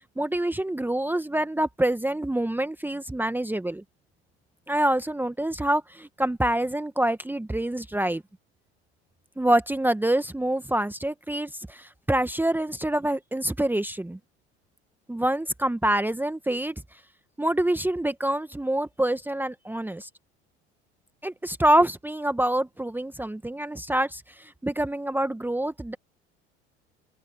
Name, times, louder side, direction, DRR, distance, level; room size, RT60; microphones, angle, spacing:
voice 1, 0.2-3.8 4.7-8.2 9.4-14.2 15.1-16.7 17.4-20.1 21.2-26.0, right 1 dB, 5° right, 1.6 m, -26 dB
figure-of-eight pair, 70°, 34 cm